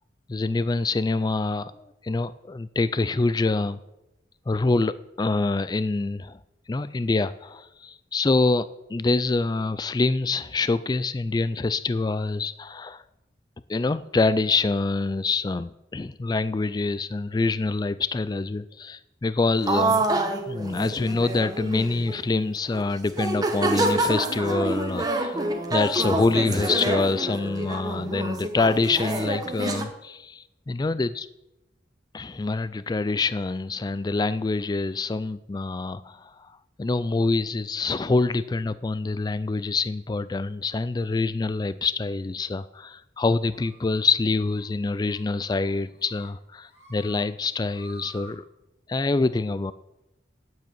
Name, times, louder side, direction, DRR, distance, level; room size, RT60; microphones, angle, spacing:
voice 1, 0.3-3.8 4.5-6.4 6.7-13.0 13.7-20.0 20.5-31.3 32.1-48.4 48.9-49.7, left 3 dB, 20° left, 15 dB, 0.3 m, -26 dB
sound 1, 19.7-22.2 22.7-22.8 23.1-29.8, right 2 dB, 20° right, 1.2 m, -27 dB
sound 2, 43.5-44.1 44.4-44.6 45.0-45.2 45.6-46.3 46.6-47.2 47.5-48.3, right 1 dB, 40° left, 4.7 m, -50 dB
9.3 x 7.7 x 8.9 m, 0.92 s
head